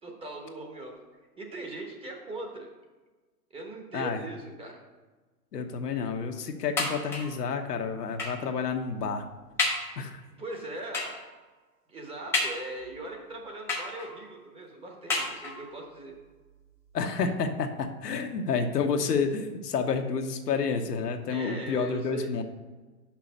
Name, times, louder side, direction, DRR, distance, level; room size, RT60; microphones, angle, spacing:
voice 1, 0.0-1.0 1.4-2.7 3.5-4.8 10.4-11.2 11.9-16.1 21.3-22.3, right 2 dB, 10° right, 1 dB, 1.0 m, -40 dB
voice 2, 5.5-9.2 10.0-10.2 16.9-22.4, left 5 dB, 85° left, 5 dB, 1.1 m, -29 dB
sound 1, 6.8-7.4 8.2-8.5 9.0-9.1 9.6-10.0 10.9-11.3 12.3-13.0 13.7-14.3 15.1-15.8 16.6-16.7 17.0-17.1, left 3 dB, 5° left, 0.5 m, -31 dB
5.9 x 5.5 x 6.5 m, 1.3 s
hypercardioid pair, 130°, 47 cm